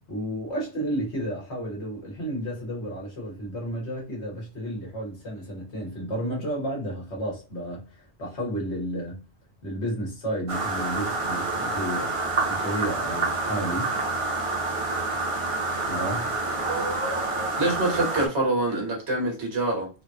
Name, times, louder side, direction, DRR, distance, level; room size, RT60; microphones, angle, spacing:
voice 1, 0.1-9.2 9.6-12.1 12.5-14.0 15.9-16.3, right 1 dB, 80° left, 1.6 m, -32 dB
sound 1, 10.5-18.3, right 3 dB, 35° right, 0.7 m, -28 dB
voice 2, 17.6-19.9, right 2 dB, 80° right, 1.5 m, -25 dB
3.7 x 2.2 x 2.8 m
omnidirectional pair, 1.1 m